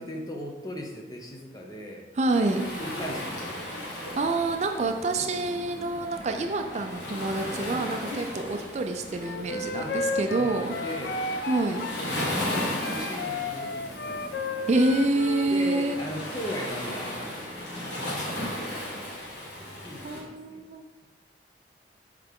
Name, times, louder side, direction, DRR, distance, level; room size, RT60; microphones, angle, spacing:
voice 1, 0.0-2.1 2.8-3.6 5.2-5.4 9.7-10.0 10.3-11.2 12.0-14.4 15.5-18.5 19.5-20.6, equal, 20° left, 1 dB, 0.7 m, -39 dB
Waves surf, 2.2-20.2, left 1 dB, 85° left, 1.6 m, -36 dB
voice 2, 2.2-2.7 4.2-10.7 11.5-11.8 14.7-16.0 20.0-20.9, right 2 dB, 40° right, 5 dB, 0.4 m, -27 dB
sound 1, 4.7-19.1, right 1 dB, 20° right, 0.8 m, -46 dB
Wind instrument woodwind instrument, 9.2-12.0 12.4-15.5, left 3 dB, 65° left, 0.4 m, -33 dB
5.8 x 4.8 x 3.6 m, 1.1 s
head